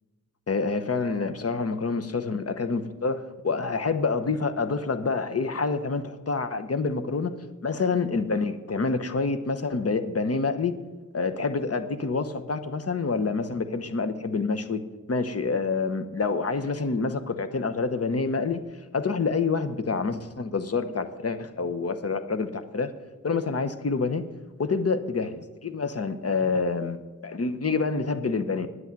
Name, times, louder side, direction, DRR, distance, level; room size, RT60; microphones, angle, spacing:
voice 1, 0.5-7.3 7.6-10.8 11.1-14.8 15.1-18.6 18.9-22.9 23.2-24.2 24.6-28.7, left 4 dB, 50° left, 10 dB, 0.9 m, -27 dB
9.5 x 8.3 x 7.6 m, 1.3 s
wide cardioid pair, 85°, 31 cm